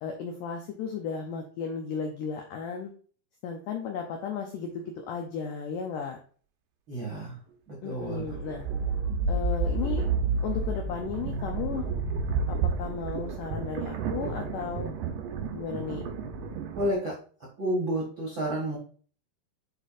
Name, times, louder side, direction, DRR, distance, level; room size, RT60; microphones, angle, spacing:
voice 1, 0.0-2.9 3.4-6.2 7.8-8.7 9.3-10.1 10.4-11.8 12.5-14.9 15.5-16.1, left 6 dB, 80° left, 3 dB, 1.9 m, -34 dB
voice 2, 6.9-7.4 7.7-8.2 16.7-17.1 17.6-18.8, right 1 dB, 50° right, -3 dB, 1.5 m, -30 dB
sound 1, 8.1-16.9, right 4 dB, 75° right, 2.0 m, -30 dB
8.2 x 4.6 x 2.5 m, 0.42 s
omnidirectional pair, 4.7 m